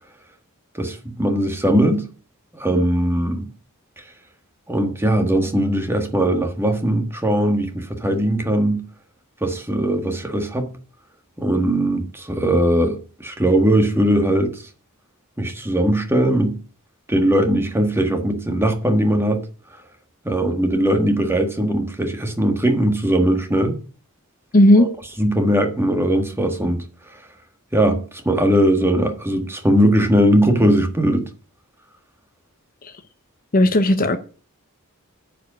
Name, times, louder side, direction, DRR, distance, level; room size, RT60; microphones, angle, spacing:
voice 1, 0.7-2.0 2.5-3.5 4.7-8.8 9.4-10.7 11.4-14.5 15.4-16.6 17.1-19.4 20.2-23.8 24.8-24.9 25.2-26.8 27.7-31.3, right 1 dB, 10° right, 1.6 m, -19 dB
voice 2, 24.5-24.9 33.5-34.2, left 1 dB, 40° left, 0.9 m, -13 dB
9.6 x 5.1 x 8.1 m
head